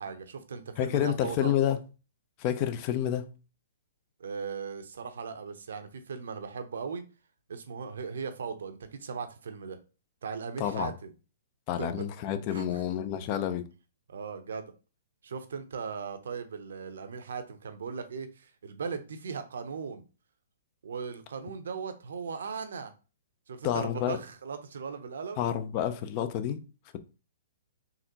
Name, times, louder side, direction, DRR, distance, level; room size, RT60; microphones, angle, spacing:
voice 1, 0.0-1.5 4.2-7.0 7.5-9.8 10.2-11.1 11.8-12.0 12.5-12.8 14.1-14.7 15.2-20.0 20.8-22.9 23.5-25.4, right 5 dB, 70° right, 0.7 m, -38 dB
voice 2, 0.8-1.8 2.4-3.3 10.6-10.9 11.7-13.6 23.6-24.2 25.4-26.6, left 10 dB, 40° left, 0.5 m, -29 dB
3.9 x 2.9 x 2.8 m
hypercardioid pair, 130°, 0 cm